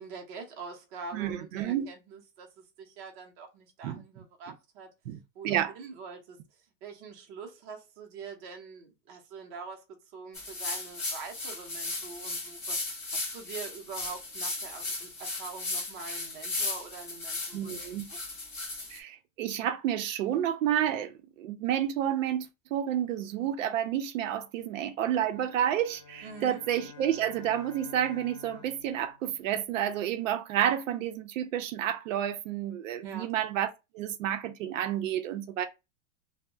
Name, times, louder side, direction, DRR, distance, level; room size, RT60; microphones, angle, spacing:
voice 1, 0.0-4.9 5.3-6.4 6.8-9.8 10.1-17.8 18.1-18.2 26.2-26.6 33.0-33.3, right 5 dB, 30° right, 0.5 m, -44 dB
voice 2, 1.1-1.9 3.8-4.0 5.1-5.2 5.4-5.7 17.5-18.1 18.9-35.7, right 10 dB, 85° right, 0.6 m, -30 dB
sound 1, 10.3-19.0, left 3 dB, 15° left, 0.3 m, -36 dB
sound 2, 25.3-30.0, left 6 dB, 45° left, 0.6 m, -51 dB
2.2 x 2.0 x 3.4 m
supercardioid pair, 170°, 38 cm